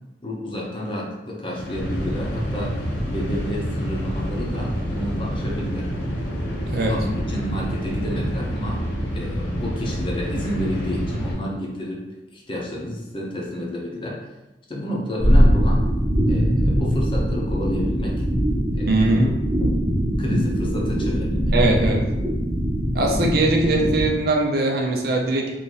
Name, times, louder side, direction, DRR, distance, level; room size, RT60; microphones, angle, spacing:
voice 1, 0.2-2.8 3.1-5.9 6.9-8.8 9.1-12.1 12.3-14.2 14.7-15.8 16.3-18.2 18.7-19.0 20.2-21.7, left 1 dB, 30° left, -3 dB, 0.8 m, -30 dB
sound 1, 1.5-11.3, equal, 80° left, 0.8 m, -28 dB
voice 2, 6.7-7.0 18.9-19.4 21.5-22.1 22.9-25.5, right 2 dB, 60° right, 1 dB, 0.6 m, -20 dB
sound 2, 15.2-24.1, equal, 10° right, 1.0 m, -21 dB
3.0 x 2.7 x 3.8 m, 1.0 s
head